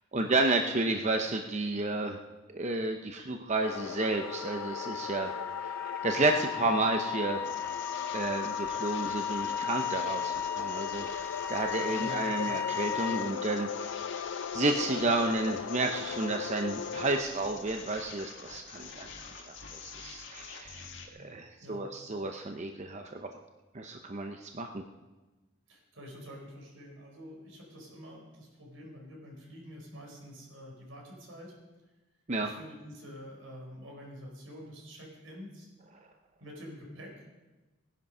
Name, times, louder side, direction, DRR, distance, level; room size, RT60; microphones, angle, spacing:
voice 1, 0.1-2.2 2.5-7.8 8.1-13.7 14.5-19.1 19.5-19.6 19.8-23.3 23.7-24.8 32.3-32.5, right 2 dB, 35° right, 4 dB, 0.7 m, -31 dB
sound 1, 3.6-17.2, left 7 dB, 80° left, 0.4 m, -39 dB
Wind instrument woodwind instrument, 3.9-13.4, left 7 dB, 10° left, 0.4 m, -36 dB
sound 2, 7.4-21.1, left 5 dB, 65° left, 1.8 m, -46 dB
voice 2, 11.9-12.4 21.6-21.8 25.7-31.6 32.4-35.7 36.4-37.3, equal, 80° right, -1 dB, 4.6 m, -47 dB
17.5 x 10.5 x 5.5 m, 1.2 s
head